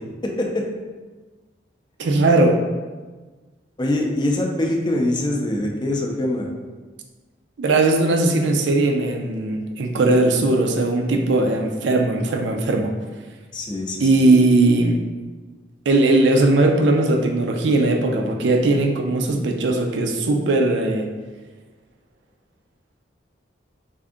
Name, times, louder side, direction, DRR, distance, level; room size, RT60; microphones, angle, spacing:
voice 1, 0.2-0.7 3.8-6.5 13.5-14.1, left 1 dB, 25° left, 1 dB, 0.4 m, -23 dB
voice 2, 2.0-2.6 7.6-12.9 14.0-15.0 15.9-21.1, right 2 dB, 70° right, 3 dB, 0.4 m, -18 dB
3.5 x 2.6 x 3.6 m, 1.3 s
head